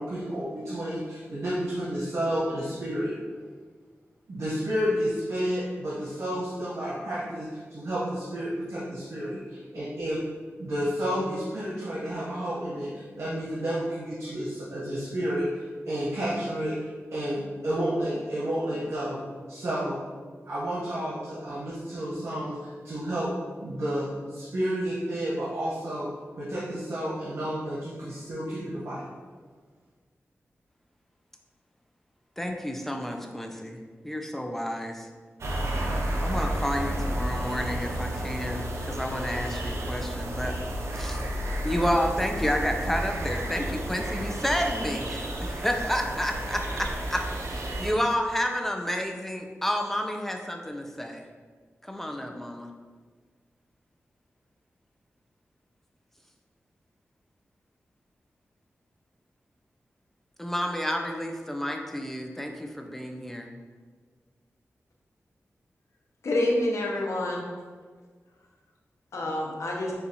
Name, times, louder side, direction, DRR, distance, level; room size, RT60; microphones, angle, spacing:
voice 1, 0.0-3.1 4.3-10.2 10.6-16.8 17.1-19.2 19.5-20.0 20.4-23.3 23.6-26.1 26.4-29.0, equal, 90° right, -8 dB, 1.0 m, -31 dB
voice 2, 32.4-33.8 34.0-35.1 36.2-40.5 40.9-41.2 41.6-51.2 51.8-52.7 60.4-63.5, equal, 5° left, 3 dB, 0.5 m, -30 dB
sound 1, 35.4-47.9, right 1 dB, 70° right, 0.6 m, -31 dB
voice 3, 66.2-67.4 69.1-69.9, left 1 dB, 85° left, -1 dB, 0.7 m, -27 dB
6.7 x 2.4 x 2.9 m, 1.5 s
wide cardioid pair, 90°, 5 cm